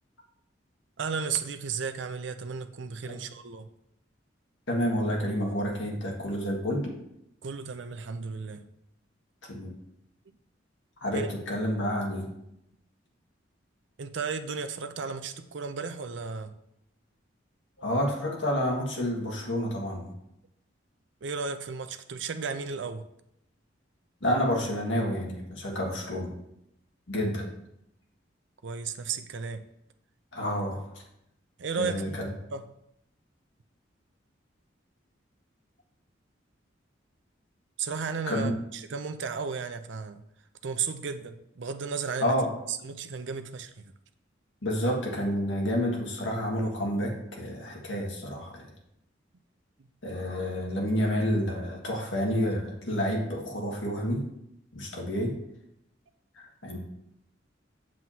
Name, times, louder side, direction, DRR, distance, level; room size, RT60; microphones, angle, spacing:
voice 1, 1.0-3.7 7.4-8.6 11.1-11.3 14.0-16.5 21.2-23.0 28.6-29.6 31.6-32.2 32.5-32.6 37.8-40.2 40.6-42.3 42.7-43.8, right 5 dB, 70° right, 0.5 m, -34 dB
voice 2, 4.7-6.9 9.5-9.7 11.0-12.3 17.8-20.1 24.2-26.3 27.1-27.5 30.3-30.8 31.8-32.2 38.3-38.5 42.2-42.5 44.6-48.7 50.0-54.2 54.7-55.3 56.3-56.8, equal, 75° left, 1.8 m, -29 dB
7.6 x 7.3 x 2.8 m
head